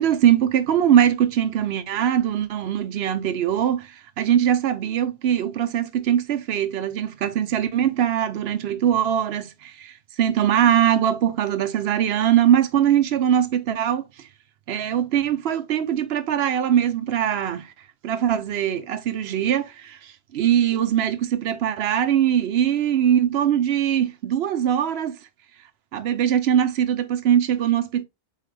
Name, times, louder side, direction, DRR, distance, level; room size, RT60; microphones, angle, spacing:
voice 1, 0.0-14.3 14.7-17.7 18.0-25.2 25.9-28.0, right 10 dB, 70° right, 0.8 m, -21 dB
4.7 x 3.2 x 3.2 m
omnidirectional pair, 1.2 m